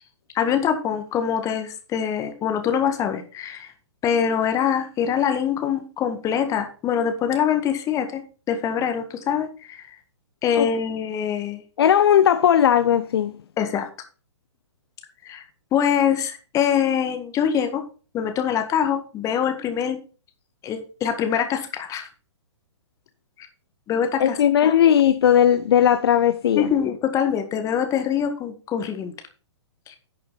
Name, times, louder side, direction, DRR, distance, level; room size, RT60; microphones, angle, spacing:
voice 1, 0.3-3.7 4.0-8.2 8.5-9.8 10.4-11.6 13.6-13.9 15.2-15.4 15.7-17.8 18.1-20.0 20.6-22.1 23.9-24.4 24.6-24.8 26.5-29.1 29.9-30.0, left 8 dB, 20° left, 1.8 m, -24 dB
voice 2, 11.8-13.4 24.2-26.7, left 9 dB, 60° left, 0.6 m, -17 dB
11.0 x 6.6 x 4.0 m
figure-of-eight pair, 120°, 15 cm